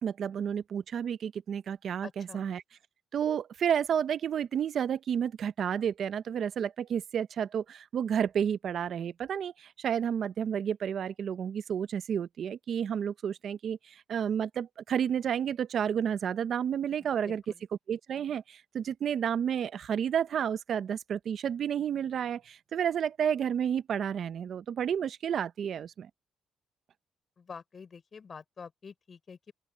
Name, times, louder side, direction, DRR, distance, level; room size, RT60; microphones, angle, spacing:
voice 1, 0.0-2.6 3.1-17.4 17.9-26.1, right 8 dB, 60° right, 0.7 m, -31 dB
voice 2, 2.0-2.5 17.0-17.6 27.4-29.5, left 5 dB, 40° left, 5.4 m, -47 dB
open air
cardioid pair, 90°, 0 cm